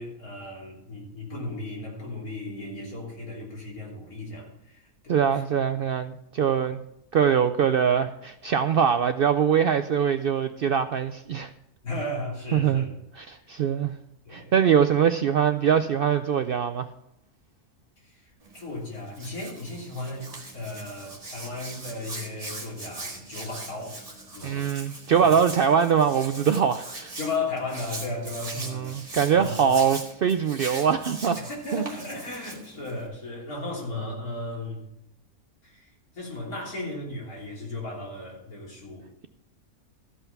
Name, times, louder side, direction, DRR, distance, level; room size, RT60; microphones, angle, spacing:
voice 1, 0.0-5.4 11.8-12.9 14.2-14.5 18.0-24.0 24.3-24.8 25.2-25.3 27.2-28.9 29.3-29.7 31.4-34.8 35.6-39.1, left 2 dB, 90° left, 3.7 m, -35 dB
voice 2, 5.1-6.8 7.1-11.5 12.5-12.9 13.2-13.9 14.3-16.9 24.4-27.1 28.6-31.4 31.7-31.8, right 7 dB, 75° right, 0.5 m, -23 dB
Hands, 18.4-33.1, right 2 dB, 25° right, 1.8 m, -41 dB
14.0 x 5.6 x 5.9 m
omnidirectional pair, 1.5 m